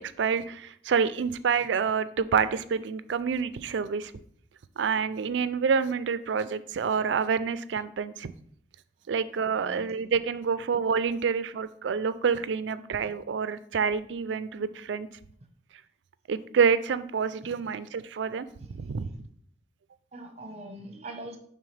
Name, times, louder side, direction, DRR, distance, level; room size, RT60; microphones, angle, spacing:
voice 1, 0.0-4.1 4.8-8.3 9.1-15.1 16.3-18.5 18.8-19.1, right 6 dB, 90° right, 14 dB, 0.4 m, -27 dB
voice 2, 9.5-9.9 18.6-19.2 20.1-21.4, right 2 dB, 35° right, 5 dB, 0.9 m, -43 dB
9.1 x 3.8 x 3.3 m, 0.64 s
head